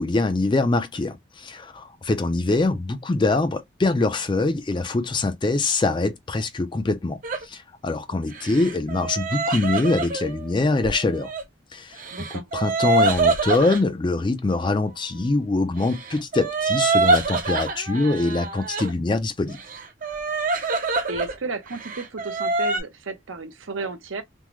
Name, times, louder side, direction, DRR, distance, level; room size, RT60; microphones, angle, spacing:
voice 1, 0.0-7.2 7.4-11.3 11.7-12.0 12.3-19.6, left 2 dB, 25° left, 0.3 m, -24 dB
sound 1, 7.2-7.4 8.3-11.4 12.0-13.8 15.8-18.9 19.5-21.4 21.7-22.8, right 3 dB, 40° right, 0.5 m, -25 dB
voice 2, 12.1-12.5 21.1-24.2, right 3 dB, 75° right, 0.7 m, -33 dB
3.5 x 2.0 x 2.9 m
head